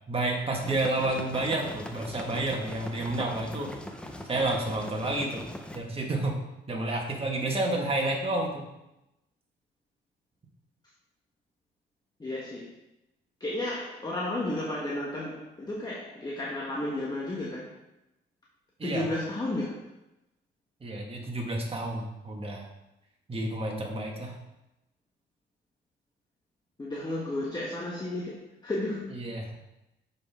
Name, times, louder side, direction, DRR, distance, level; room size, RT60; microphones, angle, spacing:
voice 1, 0.1-3.8 4.2-5.5 5.7-6.4 6.7-8.7 18.8-19.1 20.8-22.7 23.3-24.4 29.1-29.5, right 2 dB, 30° right, 0 dB, 1.7 m, -30 dB
sound 1, 0.6-5.8, left 1 dB, 5° left, 0.7 m, -41 dB
voice 2, 12.2-12.7 13.4-17.7 18.8-19.8 26.8-29.1, left 1 dB, 20° left, -3 dB, 1.2 m, -33 dB
6.7 x 5.5 x 3.6 m, 0.92 s
cardioid pair, 90°, 20 cm